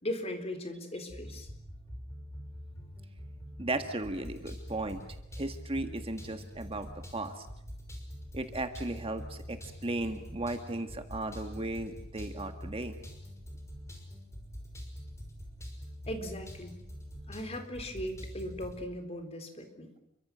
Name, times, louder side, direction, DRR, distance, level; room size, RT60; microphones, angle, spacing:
voice 1, 0.0-1.5 16.1-16.8 17.3-19.9, left 1 dB, 30° left, 6 dB, 4.0 m, -38 dB
sound 1, 1.1-18.8, equal, 15° left, 5.7 m, -45 dB
voice 2, 3.6-5.0 5.4-7.5 8.3-12.9, right 2 dB, 30° right, 7 dB, 1.7 m, -36 dB
30.0 x 24.0 x 6.2 m, 0.84 s
head